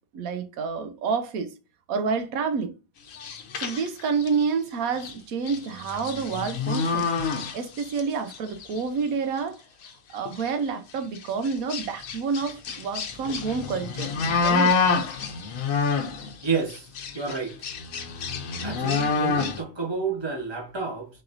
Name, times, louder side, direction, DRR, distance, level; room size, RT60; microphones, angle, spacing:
voice 1, 0.1-1.5 1.9-2.7 3.5-7.1 7.5-9.6 10.1-14.1 14.4-14.7, right 5 dB, 90° right, 1.1 m, -28 dB
sound 1, 3.1-4.4 5.0-5.1 5.5-8.0 8.3-8.8 9.4-9.5 9.8-9.9 10.3-10.5 11.2-16.3 16.7-19.6, left 5 dB, 75° left, 1.1 m, -27 dB
voice 2, 16.4-16.9 17.1-17.6 18.6-21.1, right 5 dB, 20° right, 1.0 m, -30 dB
4.3 x 4.1 x 2.6 m
omnidirectional pair, 1.5 m